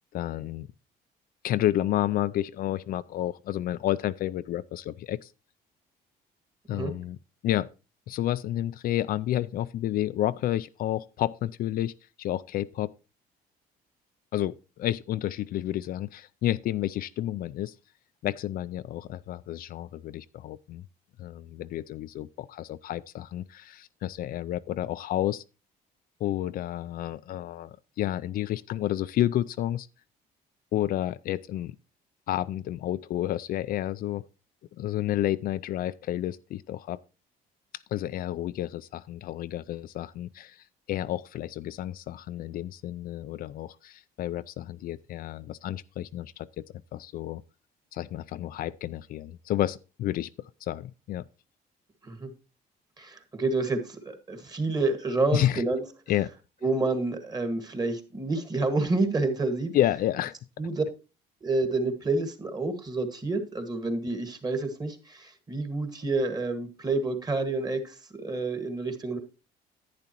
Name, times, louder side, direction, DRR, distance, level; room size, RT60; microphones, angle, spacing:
voice 1, 0.1-0.7 1.4-5.3 6.7-7.2 7.4-7.7 8.1-11.9 12.2-12.9 14.3-17.7 18.2-20.8 21.2-25.4 26.2-29.9 30.7-31.8 32.3-34.2 34.8-37.0 37.9-46.6 46.9-47.4 47.9-50.3 50.6-51.2 55.3-55.6 56.1-56.3 59.7-60.3, left 13 dB, 60° left, 0.4 m, -30 dB
voice 2, 53.0-55.8 56.6-59.7 60.6-60.8 61.4-69.2, right 3 dB, 25° right, 1.7 m, -29 dB
10.5 x 9.5 x 3.0 m
cardioid pair, 110°, 17 cm